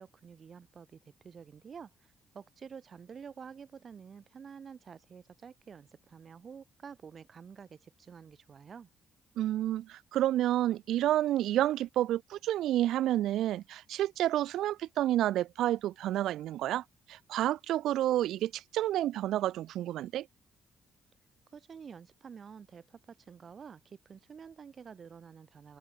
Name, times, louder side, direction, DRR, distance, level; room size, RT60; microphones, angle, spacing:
voice 1, 0.0-8.9 21.5-25.8, right 6 dB, 45° right, 2.0 m, -49 dB
voice 2, 9.4-20.3, right 13 dB, 80° right, 0.3 m, -30 dB
cardioid pair, 90°, 0 cm